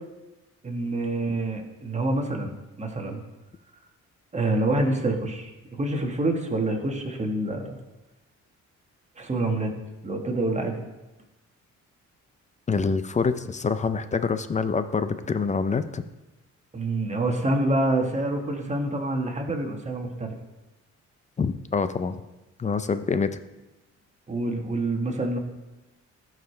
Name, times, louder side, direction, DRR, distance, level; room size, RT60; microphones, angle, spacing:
voice 1, 0.6-3.2 4.3-7.8 9.2-9.7 10.0-10.8 16.7-20.3 24.3-25.4, right 2 dB, 25° right, 2 dB, 1.5 m, -27 dB
voice 2, 12.7-16.0 21.4-22.2 22.6-23.4, left 5 dB, 25° left, 11 dB, 0.5 m, -26 dB
14.0 x 4.9 x 3.3 m, 1.0 s
cardioid pair, 90°, 30 cm